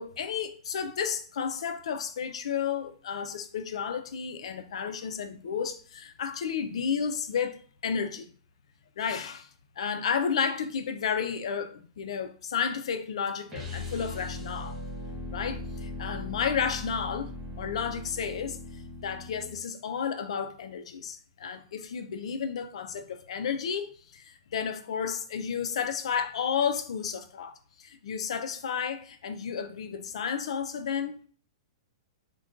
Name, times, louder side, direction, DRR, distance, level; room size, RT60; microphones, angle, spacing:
voice 1, 0.0-8.3 9.0-9.5 9.8-14.8 15.3-17.3 17.6-31.3, left 7 dB, 70° left, 0.4 m, -32 dB
sound 1, 13.5-19.6, left 2 dB, 10° right, 0.7 m, -39 dB
2.4 x 2.2 x 3.7 m
hypercardioid pair, 150°, 3 cm